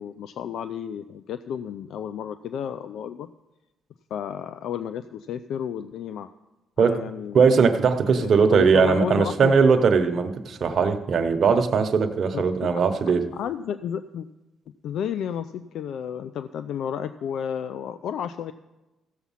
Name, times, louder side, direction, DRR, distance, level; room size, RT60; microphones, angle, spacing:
voice 1, 0.0-3.3 4.1-6.3 6.8-7.6 8.0-9.5 12.3-12.7 13.3-14.3 14.8-18.5, left 8 dB, 75° left, 12 dB, 0.4 m, -32 dB
voice 2, 7.3-13.2, right 5 dB, 55° right, 7 dB, 1.0 m, -20 dB
15.0 x 7.2 x 5.7 m, 1.0 s
cardioid pair, 90°, 0 cm